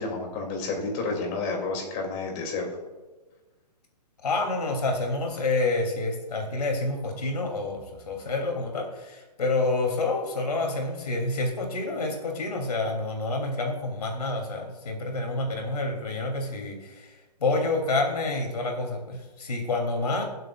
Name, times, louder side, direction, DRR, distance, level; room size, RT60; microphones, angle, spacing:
voice 1, 0.0-2.7, left 3 dB, 30° left, 1 dB, 2.7 m, -30 dB
voice 2, 4.2-20.2, left 2 dB, 65° left, 2 dB, 3.1 m, -28 dB
23.0 x 7.8 x 2.5 m, 1.2 s
figure-of-eight pair, 130°, 21 cm